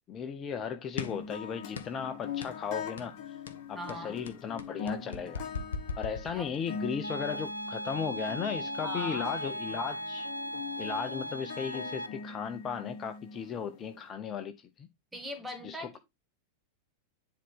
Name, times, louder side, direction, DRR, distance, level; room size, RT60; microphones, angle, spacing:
voice 1, 0.1-3.4 3.7-5.5 6.0-10.3 10.8-14.9 15.6-16.0, left 7 dB, 25° left, 0.7 m, -36 dB
sound 1, 1.0-1.3 1.7-2.1 2.4-2.6 3.0-3.2 3.5-6.8, left 5 dB, 65° left, 1.0 m, -39 dB
sound 2, 1.0-14.0, left 5 dB, 45° left, 1.6 m, -42 dB
voice 2, 3.7-4.2 6.3-6.5 8.8-9.3 15.1-16.0, left 1 dB, 5° right, 2.6 m, -40 dB
sound 3, 7.0-12.1, right 1 dB, 85° left, 0.7 m, -37 dB
10.0 x 4.1 x 3.5 m
figure-of-eight pair, 90°, 0 cm